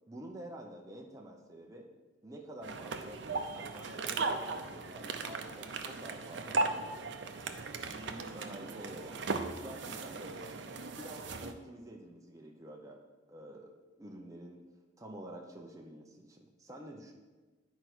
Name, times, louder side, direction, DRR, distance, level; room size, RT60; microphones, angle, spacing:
voice 1, 0.1-1.9 2.2-7.5 7.9-10.6 10.9-13.0 13.3-13.7 14.0-14.6 15.0-17.1, right 1 dB, 15° right, 0 dB, 0.7 m, -49 dB
sound 1, 2.6-11.5, right 3 dB, 65° right, 0.7 m, -37 dB
10.0 x 4.6 x 6.1 m, 1.3 s
head